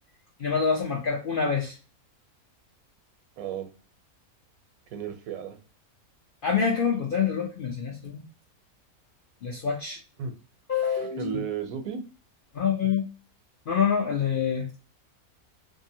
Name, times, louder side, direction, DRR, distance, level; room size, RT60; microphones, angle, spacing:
voice 1, 0.4-1.7 6.4-8.2 9.4-10.0 10.7-11.3 12.5-13.0 13.7-14.7, left 6 dB, 65° left, -1 dB, 0.5 m, -26 dB
voice 2, 3.4-3.7 4.9-5.6 10.2-10.3 11.2-12.0, right 8 dB, 75° right, 7 dB, 1.0 m, -33 dB
2.7 x 2.5 x 2.7 m, 0.33 s
omnidirectional pair, 1.5 m